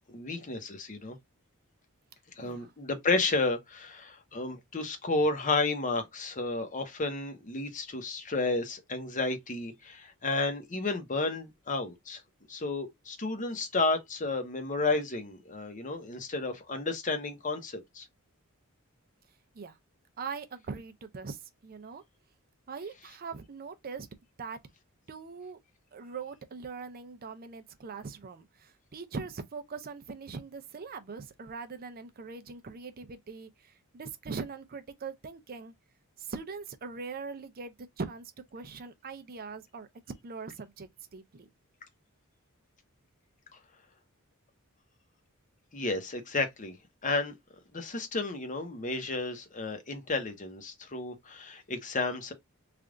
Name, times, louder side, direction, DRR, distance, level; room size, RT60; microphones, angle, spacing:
voice 1, 0.1-1.2 2.4-12.2 12.5-18.0 45.7-46.8 47.0-47.3 47.7-52.3, left 3 dB, 35° left, 0.9 m, -32 dB
voice 2, 2.4-2.7 19.5-19.8 20.2-22.0 22.7-24.1 24.4-24.6 25.1-25.6 25.9-35.7 36.2-39.9 40.2-41.5, right 5 dB, 45° right, 0.5 m, -41 dB
3.4 x 2.4 x 3.6 m
head